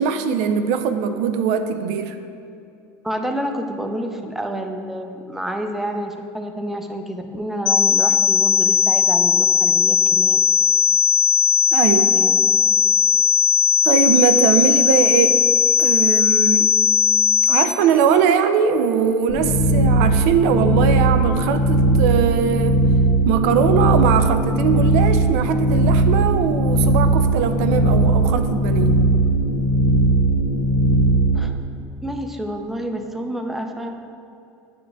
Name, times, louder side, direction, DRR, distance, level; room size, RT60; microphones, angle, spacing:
voice 1, 0.0-2.2 11.7-12.1 13.8-15.5 15.8-16.7 17.5-22.8 23.2-29.0, right 7 dB, 75° right, 9 dB, 0.4 m, -20 dB
voice 2, 3.0-10.4 12.0-12.5 31.3-31.5 32.0-33.9, right 1 dB, 5° right, 5 dB, 0.5 m, -29 dB
sound 1, 7.7-17.7, left 12 dB, 70° left, 0.4 m, -17 dB
sound 2, 19.3-31.4, right 2 dB, 40° left, 1.1 m, -18 dB
10.5 x 5.0 x 2.3 m, 2.6 s
supercardioid pair, 115°, 8 cm